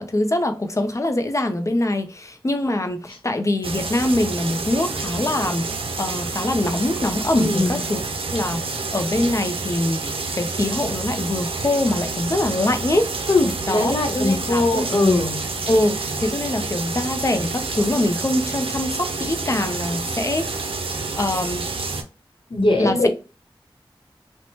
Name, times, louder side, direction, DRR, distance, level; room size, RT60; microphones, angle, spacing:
voice 1, 0.0-5.7 6.0-8.0 8.3-10.0 10.3-13.1 13.7-14.9 15.7-20.5 21.1-21.7 22.8-23.1, left 1 dB, 35° left, 0.5 m, -23 dB
sound 1, 3.6-22.0, right 3 dB, 80° right, 0.5 m, -28 dB
voice 2, 7.3-7.7 13.3-15.4 22.5-23.1, left 2 dB, 70° left, 0.8 m, -20 dB
2.9 x 2.1 x 2.8 m
wide cardioid pair, 50°, 9 cm